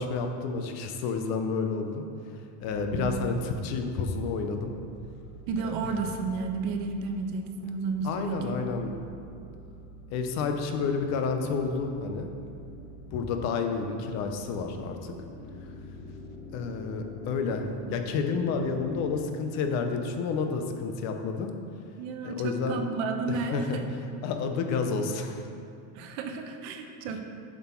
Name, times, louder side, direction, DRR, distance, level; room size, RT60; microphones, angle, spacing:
voice 1, 0.0-2.0 2.6-4.7 5.6-5.7 8.0-8.9 10.1-12.3 13.1-15.1 16.5-21.5 22.2-22.8 23.3-23.8 24.2-25.5 27.1-27.2, left 4 dB, 35° left, 5 dB, 0.6 m, -30 dB
sound 1, 2.6-19.2, equal, 90° left, 1.7 m, -47 dB
voice 2, 5.5-8.6 17.8-17.9 22.0-23.8 25.9-27.2, right 4 dB, 50° right, 5 dB, 0.7 m, -32 dB
7.4 x 6.0 x 4.3 m, 2.5 s
cardioid pair, 170°, 45 cm